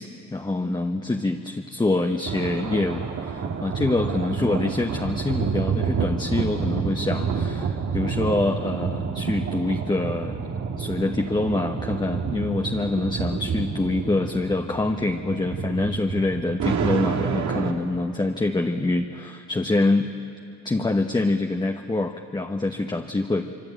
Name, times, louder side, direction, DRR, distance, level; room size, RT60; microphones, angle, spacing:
voice 1, 0.0-20.1 20.6-23.5, left 2 dB, 15° left, 3 dB, 1.1 m, -25 dB
sound 1, 2.3-17.7, right 6 dB, 65° right, 2.1 m, -28 dB
25.5 x 23.0 x 8.9 m, 2.6 s
cardioid pair, 90°, 30 cm